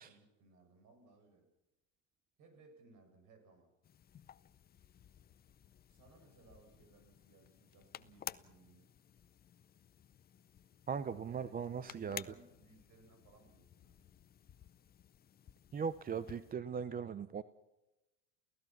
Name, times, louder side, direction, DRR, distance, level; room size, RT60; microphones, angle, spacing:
voice 1, 0.0-1.5 2.4-3.7 5.9-8.9 11.3-14.1, right 3 dB, 50° right, 7 dB, 6.5 m, -64 dB
sound 1, 3.8-16.5, left 9 dB, 25° left, 0.7 m, -54 dB
voice 2, 10.9-12.2 15.7-17.4, right 6 dB, 25° right, 14 dB, 0.7 m, -39 dB
28.5 x 16.5 x 6.0 m, 0.95 s
supercardioid pair, 110°, 38 cm